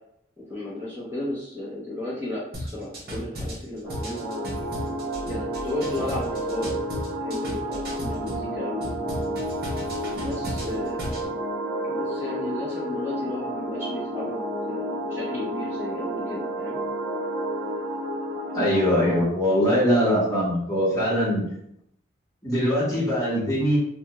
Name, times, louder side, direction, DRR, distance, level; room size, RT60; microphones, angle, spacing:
voice 1, 0.4-4.5 5.3-6.7 7.2-8.8 10.1-11.3 11.8-16.8, left 2 dB, 10° right, -11 dB, 0.8 m, -34 dB
sound 1, 2.5-8.4 8.8-11.3, equal, 55° right, 0.8 m, -35 dB
sound 2, 3.8-19.2, right 1 dB, 85° right, 0.6 m, -31 dB
voice 2, 18.5-21.4 22.4-23.8, equal, 15° left, -9 dB, 1.1 m, -22 dB
2.4 x 2.3 x 3.0 m, 0.73 s
head